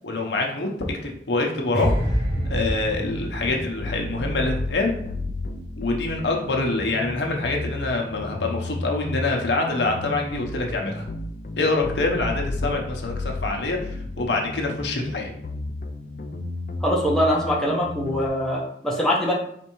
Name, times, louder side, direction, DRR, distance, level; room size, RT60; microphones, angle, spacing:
voice 1, 0.0-2.2 2.5-4.9 5.8-11.1 11.6-15.3, left 2 dB, 85° left, 1 dB, 0.8 m, -25 dB
sound 1, 1.7-4.9 5.2-5.5, equal, 55° right, 0.8 m, -27 dB
sound 2, 2.3-18.3, left 2 dB, 45° left, 0.4 m, -33 dB
voice 2, 16.8-19.3, equal, 5° left, -4 dB, 0.7 m, -23 dB
4.4 x 3.3 x 3.0 m, 0.67 s
head